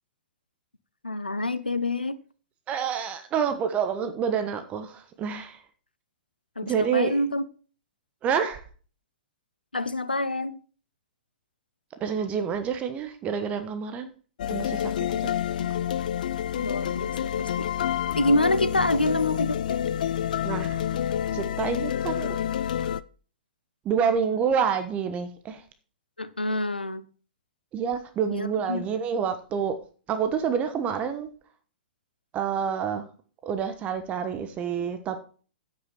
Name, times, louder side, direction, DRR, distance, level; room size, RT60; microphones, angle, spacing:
voice 1, 1.0-2.2 6.6-7.4 9.7-10.6 16.6-17.7 18.2-19.8 26.2-27.0 28.3-28.9, left 2 dB, 90° left, 0.8 m, -27 dB
voice 2, 2.7-5.6 6.6-7.2 8.2-8.6 12.0-14.1 14.5-14.9 15.2-15.3 20.4-20.8 21.3-22.4 23.8-25.6 27.7-29.8 30.1-31.3 32.3-33.1 33.4-35.2, right 7 dB, 25° right, 1.2 m, -28 dB
sound 1, 14.4-23.0, left 10 dB, 60° left, 0.5 m, -28 dB
9.1 x 8.4 x 4.3 m
figure-of-eight pair, 110°, 5 cm